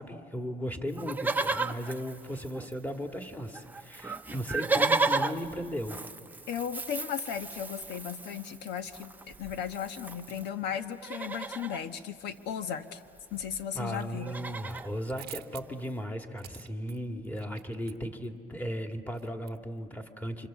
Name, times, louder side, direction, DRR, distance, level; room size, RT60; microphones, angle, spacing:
voice 1, 0.0-6.0 13.8-20.5, equal, 10° left, 4 dB, 2.0 m, -36 dB
Livestock farm animals working animals, 0.9-3.0 3.2-3.3 3.5-10.5 10.9-11.8 13.1-13.2 13.3-13.6 14.0-14.9 15.5-15.6, right 3 dB, 10° right, 0.7 m, -34 dB
voice 2, 6.5-13.0 13.3-14.3, left 8 dB, 80° left, 9 dB, 1.3 m, -36 dB
sound 1, 13.4-14.0 14.3-19.9, right 13 dB, 70° right, 0.9 m, -50 dB
29.5 x 25.5 x 7.5 m, 2.4 s
cardioid pair, 110°, 17 cm